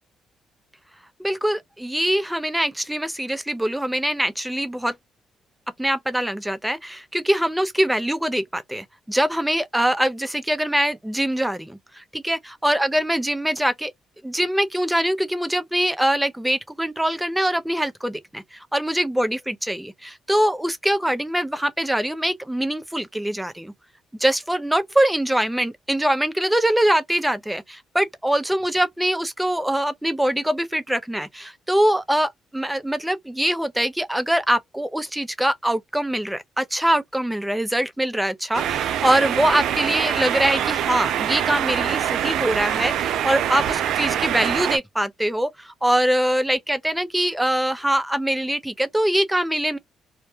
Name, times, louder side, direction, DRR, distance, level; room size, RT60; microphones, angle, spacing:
voice 1, 1.2-4.9 5.8-13.9 14.2-23.7 24.2-49.8, right 1 dB, 5° right, 0.4 m, -23 dB
sound 1, 38.5-44.8, right 10 dB, 80° right, 0.3 m, -24 dB
2.2 x 2.1 x 2.9 m
cardioid pair, 90°, 0 cm